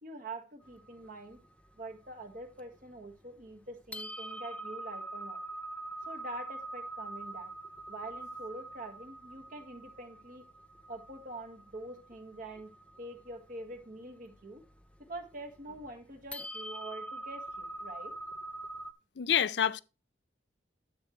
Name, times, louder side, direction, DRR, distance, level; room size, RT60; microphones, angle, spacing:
voice 1, 0.0-1.4 1.8-5.4 6.1-7.5 7.9-10.4 10.9-12.7 13.0-14.6 15.0-18.1, right 2 dB, 50° right, 1.6 m, -45 dB
sound 1, 0.6-3.0 3.5-3.6 3.9-18.9, right 2 dB, 5° left, 0.4 m, -44 dB
voice 2, 19.2-19.8, left 9 dB, 80° left, 0.5 m, -27 dB
10.0 x 7.9 x 3.1 m
head